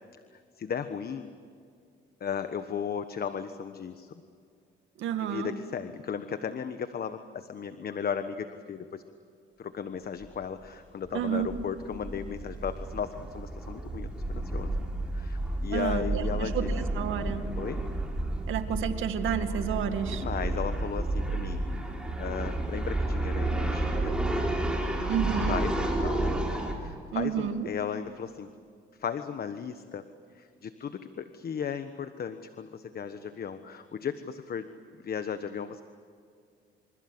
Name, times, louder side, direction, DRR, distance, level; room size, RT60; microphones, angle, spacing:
voice 1, 0.3-1.3 2.2-4.1 5.2-9.0 9.6-14.8 15.1-16.7 17.6-17.8 20.1-21.9 22.2-24.2 25.5-26.4 26.8-28.5 29.0-30.1 30.3-34.7 35.0-35.8, left 7 dB, 50° left, 10 dB, 1.3 m, -36 dB
voice 2, 5.0-5.5 11.1-11.5 15.7-17.5 18.5-20.2 25.0-25.6 27.1-27.7, right 8 dB, 85° right, 8 dB, 2.2 m, -30 dB
sound 1, 10.2-10.4 10.6-10.7 11.1-26.7, right 2 dB, 5° right, 5.6 m, -31 dB
27.5 x 27.0 x 7.9 m, 2.2 s
cardioid pair, 90°, 20 cm